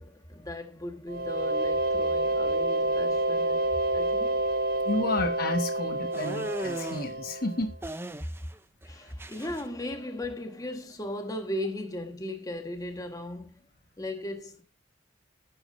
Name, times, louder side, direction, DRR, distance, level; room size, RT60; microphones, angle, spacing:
voice 1, 0.0-4.5 8.8-13.7 14.0-14.6, left 1 dB, 20° left, 1.6 m, -37 dB
sound 1, 1.1-7.7, right 1 dB, 55° right, 1.2 m, -28 dB
voice 2, 4.8-7.7, left 2 dB, 55° left, 1.3 m, -31 dB
sound 2, 6.1-7.1 7.8-8.6 8.8-9.6, right 1 dB, 15° right, 0.7 m, -37 dB
10.5 x 4.8 x 6.7 m
head